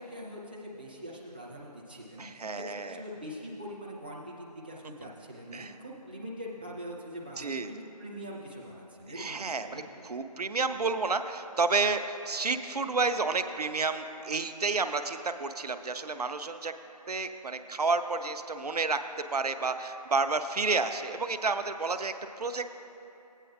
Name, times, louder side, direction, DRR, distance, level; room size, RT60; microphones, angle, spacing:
voice 1, 0.0-9.8, equal, 15° right, -5 dB, 0.5 m, -43 dB
voice 2, 2.2-2.9 5.5-5.7 7.4-7.7 9.1-16.7 17.1-19.0 19.3-22.8, right 4 dB, 70° right, 9 dB, 0.5 m, -30 dB
15.0 x 9.0 x 2.4 m, 3.0 s
figure-of-eight pair, 165°, 21 cm